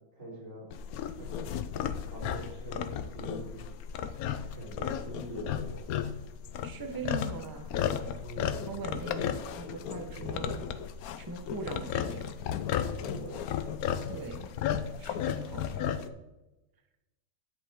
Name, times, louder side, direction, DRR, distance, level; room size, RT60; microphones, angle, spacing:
voice 1, 0.2-0.7 1.2-1.3 2.1-3.6 4.3-5.8 8.2-8.7 10.1-10.5 12.9-13.4 13.9-14.1, right 1 dB, 45° right, -5 dB, 4.1 m, -44 dB
sound 1, 0.7-16.1, left 9 dB, 70° left, 0.9 m, -34 dB
voice 2, 6.6-7.8 8.7-10.6 11.2-12.4 14.1-14.4 15.0-15.8, right 3 dB, 20° right, 5 dB, 0.6 m, -40 dB
9.9 x 8.1 x 3.6 m, 1.0 s
omnidirectional pair, 2.0 m